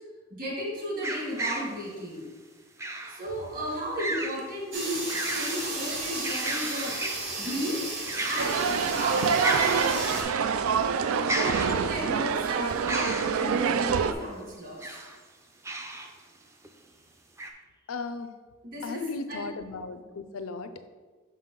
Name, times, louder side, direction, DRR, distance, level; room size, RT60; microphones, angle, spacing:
voice 1, 0.3-2.3 3.1-7.0 7.4-7.8 8.2-10.0 11.2-14.8 18.6-19.4, equal, 40° right, -3 dB, 1.7 m, -34 dB
sound 1, 1.0-1.7 2.8-3.2 4.0-4.4 4.8-5.7 6.0-7.4 8.1-8.7 9.0-9.1 9.4-10.5 11.3-12.2 12.9-13.4 14.6-15.2 15.6-16.1 16.6-16.7 17.4-17.5, right 1 dB, 15° right, 0.4 m, -33 dB
sound 2, 4.7-10.2, right 2 dB, 60° right, 1.4 m, -34 dB
sound 3, 8.4-14.1, right 6 dB, 90° right, 0.4 m, -26 dB
voice 2, 17.9-18.3 18.8-20.9, left 3 dB, 85° left, 10 dB, 0.5 m, -36 dB
6.2 x 5.6 x 3.7 m, 1.4 s
head